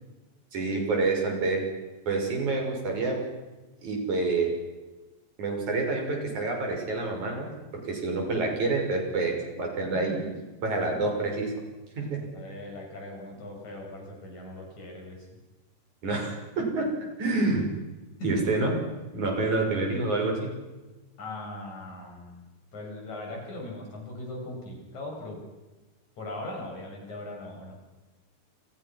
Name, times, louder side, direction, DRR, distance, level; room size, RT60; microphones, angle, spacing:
voice 1, 0.5-1.6 2.1-3.2 3.8-4.5 5.4-7.5 7.7-10.2 10.6-11.5 12.0-12.2 16.0-16.9 17.2-17.7 18.2-18.7 19.1-20.5, right 3 dB, 70° right, 1 dB, 7.9 m, -27 dB
voice 2, 9.9-10.3 10.9-11.1 12.2-15.3 18.2-18.5 19.6-19.8 21.2-22.4 22.7-25.4 26.2-27.7, left 1 dB, 65° left, 0 dB, 8.7 m, -39 dB
29.5 x 29.0 x 6.2 m, 1.1 s
omnidirectional pair, 3.5 m